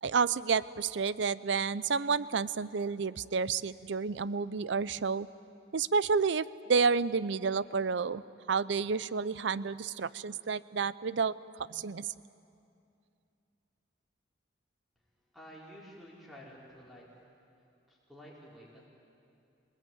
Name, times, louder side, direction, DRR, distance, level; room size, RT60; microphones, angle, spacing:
voice 1, 0.0-5.3 5.7-8.2 8.5-11.3 11.7-12.1, right 5 dB, 65° right, 18 dB, 0.5 m, -30 dB
voice 2, 15.3-17.0 17.9-18.9, equal, ahead, -5 dB, 4.8 m, -51 dB
26.5 x 19.5 x 9.3 m, 2.6 s
head